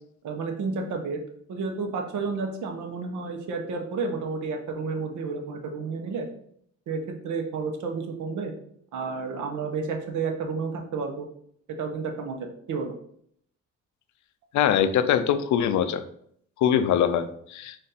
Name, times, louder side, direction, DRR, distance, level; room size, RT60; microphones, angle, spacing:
voice 1, 0.2-1.2 1.5-6.2 6.9-8.5 8.9-11.3 11.8-12.4 12.7-12.9, right 4 dB, 75° right, 4 dB, 0.9 m, -31 dB
voice 2, 14.5-16.0 16.6-17.8, left 9 dB, 70° left, 11 dB, 0.5 m, -23 dB
4.0 x 2.5 x 4.1 m, 0.67 s
cardioid pair, 90°, 30 cm